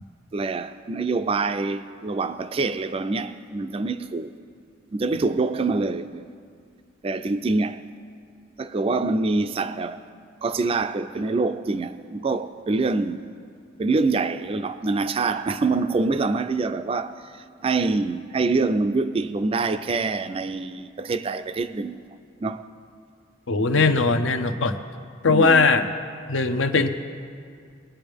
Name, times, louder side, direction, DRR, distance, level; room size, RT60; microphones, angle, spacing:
voice 1, 0.3-4.3 4.9-6.3 7.0-7.8 8.6-10.0 10.4-13.3 13.8-22.0 22.4-22.6 25.3-25.7, right 3 dB, 30° right, 0.4 m, -25 dB
voice 2, 23.5-24.8 25.2-25.9 26.3-26.9, left 4 dB, 80° left, 0.8 m, -19 dB
21.5 x 8.8 x 3.5 m
head